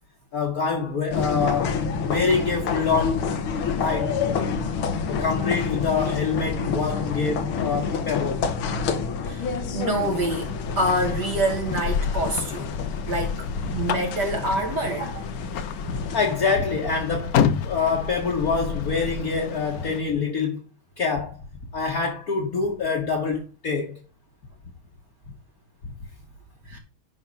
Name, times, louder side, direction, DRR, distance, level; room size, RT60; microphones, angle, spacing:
voice 1, 0.3-3.3 3.6-4.1 5.1-8.5 13.6-13.8 15.8-17.4 17.6-20.6 21.0-21.3 21.7-24.0, left 5 dB, 50° left, 1.6 m, -25 dB
sound 1, 1.1-16.4, left 5 dB, 80° left, 1.9 m, -28 dB
voice 2, 9.7-10.5 10.8-12.7 13.1-13.5 13.7-15.2 26.7-26.8, right 1 dB, 55° right, 2.1 m, -26 dB
sound 2, 10.2-20.0, left 7 dB, 65° left, 0.9 m, -30 dB
10.5 x 3.8 x 5.5 m
omnidirectional pair, 2.2 m